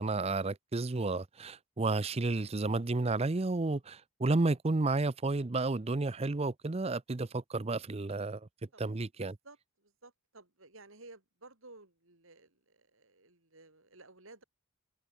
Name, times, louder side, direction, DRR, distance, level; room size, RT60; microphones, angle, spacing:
voice 1, 0.0-8.4 8.8-9.3, right 3 dB, 30° right, 0.6 m, -31 dB
voice 2, 9.2-14.4, right 2 dB, 65° right, 3.8 m, -55 dB
head